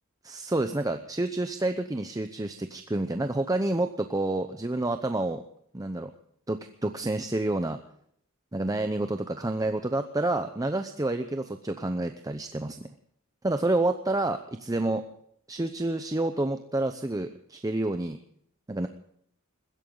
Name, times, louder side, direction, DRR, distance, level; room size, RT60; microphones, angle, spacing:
voice 1, 0.2-5.4 5.7-6.1 6.5-7.8 8.5-12.9 13.4-15.0 15.5-18.2 18.7-18.9, right 2 dB, 15° right, 7 dB, 0.7 m, -29 dB
21.5 x 15.5 x 3.9 m, 0.67 s
head